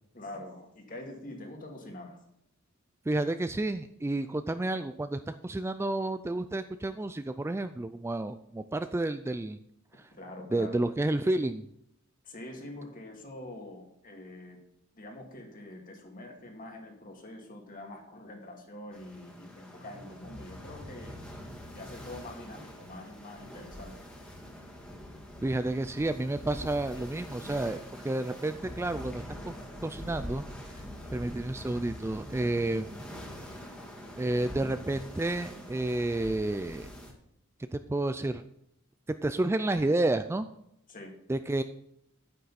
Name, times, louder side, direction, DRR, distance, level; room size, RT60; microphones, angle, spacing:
voice 1, 0.1-2.2 10.1-10.8 12.2-14.6 14.9-21.2 21.7-23.9 40.9-41.1, left 1 dB, 40° left, 2 dB, 2.3 m, -45 dB
voice 2, 3.1-9.6 10.5-11.6 25.4-27.8 28.0-29.5 29.8-30.4 31.1-33.0 34.2-36.9 37.7-38.4 39.2-40.5 41.3-41.6, right 2 dB, 15° right, 10 dB, 0.3 m, -30 dB
sound 1, 18.9-37.1, equal, 5° left, 1.8 m, -44 dB
9.2 x 9.2 x 4.2 m, 0.77 s
head